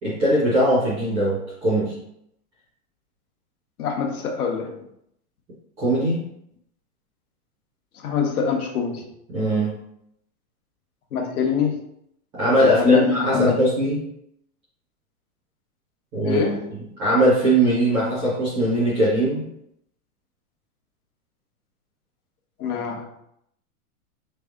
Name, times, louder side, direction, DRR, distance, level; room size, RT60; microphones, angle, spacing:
voice 1, 0.0-2.0 5.8-6.2 9.3-9.8 12.3-14.0 16.1-16.5 17.0-19.4, right 1 dB, 5° right, -11 dB, 0.4 m, -20 dB
voice 2, 3.8-4.9 7.9-9.1 11.1-11.8 12.6-13.5 16.2-16.8 22.6-23.0, left 6 dB, 85° left, 2 dB, 1.2 m, -24 dB
4.4 x 3.3 x 3.6 m, 0.75 s
supercardioid pair, 170°, 43 cm